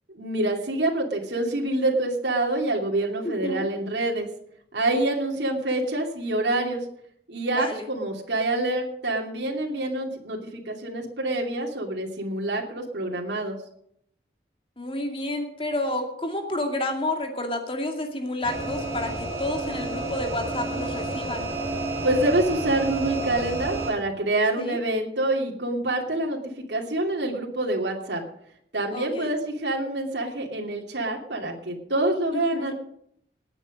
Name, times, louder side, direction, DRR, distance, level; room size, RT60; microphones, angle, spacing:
voice 1, 0.1-4.3 4.7-6.8 7.3-13.6 22.0-26.4 26.7-28.2 28.7-32.7, right 2 dB, 85° right, 0 dB, 2.7 m, -26 dB
voice 2, 3.2-3.7 7.5-7.8 14.8-21.5 24.6-24.8 28.9-29.3 32.5-32.7, left 1 dB, 30° left, 4 dB, 2.4 m, -30 dB
sound 1, 18.4-23.9, right 2 dB, 15° right, 4.8 m, -30 dB
19.0 x 8.9 x 5.2 m, 0.69 s
head